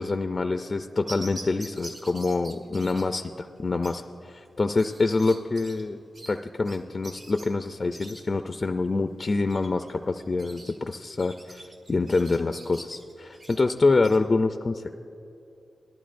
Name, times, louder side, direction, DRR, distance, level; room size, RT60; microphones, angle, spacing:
voice 1, 0.0-6.0 6.3-14.8, left 3 dB, 40° left, 7 dB, 0.4 m, -26 dB
sound 1, 1.1-14.2, right 2 dB, 65° right, 1.6 m, -46 dB
18.5 x 12.5 x 2.5 m, 2.8 s
cardioid pair, 75°, 0 cm